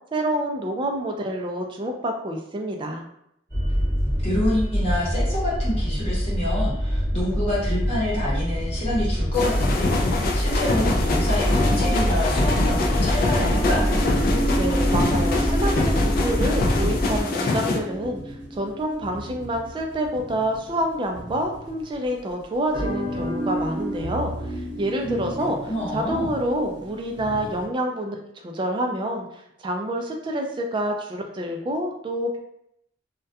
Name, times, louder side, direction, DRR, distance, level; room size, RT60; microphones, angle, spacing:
voice 1, 0.1-3.0 14.6-24.3 24.8-28.2 28.4-29.2 29.6-32.4, right 1 dB, 25° right, 2 dB, 0.3 m, -27 dB
Seatbelt Light, 3.5-17.2, equal, 15° left, 1.1 m, -24 dB
voice 2, 4.2-13.8 25.0-25.3 25.7-26.3, left 1 dB, 35° left, -7 dB, 0.9 m, -27 dB
sound 1, 9.3-17.8, left 3 dB, 50° left, 0.3 m, -25 dB
sound 2, 10.9-22.1 22.7-27.7, right 1 dB, 75° right, 0.8 m, -31 dB
2.3 x 2.1 x 2.6 m, 0.76 s
head